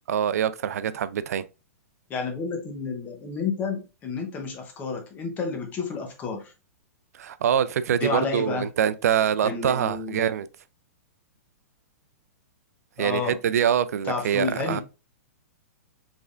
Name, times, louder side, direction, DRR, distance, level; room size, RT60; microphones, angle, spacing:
voice 1, 0.1-1.4 7.1-10.5 13.0-14.8, right 9 dB, 80° right, 0.4 m, -24 dB
voice 2, 2.1-6.5 7.9-8.7 9.4-10.3 13.0-13.4 14.0-14.8, left 4 dB, 20° left, 0.8 m, -30 dB
4.2 x 3.5 x 2.4 m
hypercardioid pair, 155°, 8 cm